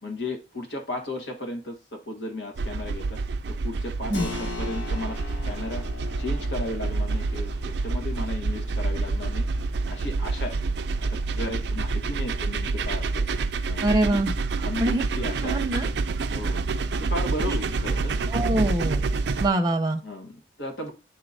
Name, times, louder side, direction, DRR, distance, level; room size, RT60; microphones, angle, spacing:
voice 1, 0.0-3.2 3.5-5.2 5.4-5.8 6.2-9.5 9.9-10.6 11.3-13.2 13.6-14.2 14.6-15.6 16.3-16.6 17.0-18.1 20.0-20.9, left 2 dB, 70° left, 3 dB, 1.5 m, -35 dB
sound 1, 2.6-19.5, right 3 dB, 65° right, 0.4 m, -27 dB
Keyboard (musical), 4.1-14.5, left 3 dB, 90° left, 1.3 m, -43 dB
voice 2, 13.8-14.3 14.8-15.0 15.4-15.9 17.4-17.6 18.3-19.0 19.4-20.0, right 1 dB, 20° right, 4 dB, 0.6 m, -24 dB
10.0 x 3.8 x 2.7 m, 0.32 s
head